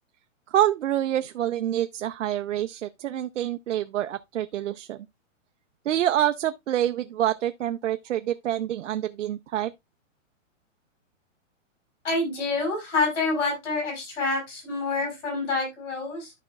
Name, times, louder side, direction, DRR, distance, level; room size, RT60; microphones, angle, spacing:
voice 1, 0.5-5.0 5.8-9.7, right 12 dB, 65° right, 0.6 m, -26 dB
voice 2, 12.0-16.3, left 3 dB, 70° left, 6.1 m, -27 dB
13.5 x 5.0 x 2.3 m
hypercardioid pair, 180°, 39 cm